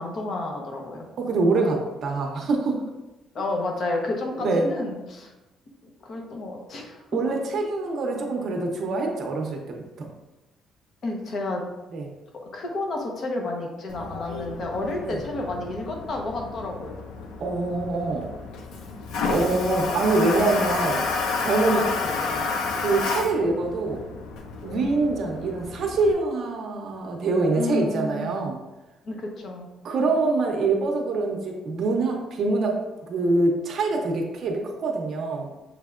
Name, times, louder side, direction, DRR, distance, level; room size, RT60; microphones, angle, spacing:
voice 1, 0.0-1.1 3.3-5.3 6.0-7.0 11.0-11.6 12.5-17.0 21.6-22.4 27.6-28.3 29.0-29.7, left 2 dB, 50° left, 1 dB, 0.8 m, -30 dB
voice 2, 1.2-2.8 4.4-4.7 7.1-10.1 11.9-12.1 15.0-15.2 17.4-18.3 19.3-21.0 21.4-21.8 22.7-24.0 24.6-28.6 29.8-32.8 33.1-35.5, right 3 dB, 55° right, 1 dB, 0.7 m, -25 dB
Toilet flush, 13.9-26.1, left 4 dB, 90° left, 0.5 m, -31 dB
6.4 x 3.3 x 2.4 m, 1.0 s
cardioid pair, 135°, 0 cm